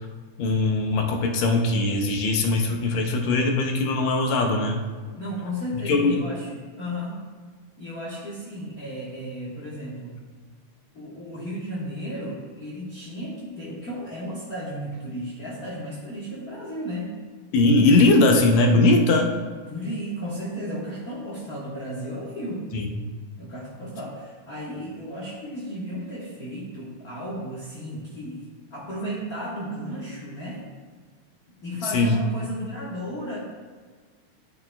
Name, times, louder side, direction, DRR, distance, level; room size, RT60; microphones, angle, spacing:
voice 1, 0.4-4.8 5.9-6.2 17.5-19.3 22.7-22.9 31.9-32.2, left 2 dB, 70° left, 2 dB, 1.9 m, -20 dB
voice 2, 5.1-7.2 7.8-10.2 10.9-17.1 19.7-22.7 23.4-30.6 31.6-33.4, equal, 50° left, -6 dB, 1.1 m, -34 dB
12.5 x 6.7 x 2.3 m, 1.5 s
omnidirectional pair, 3.5 m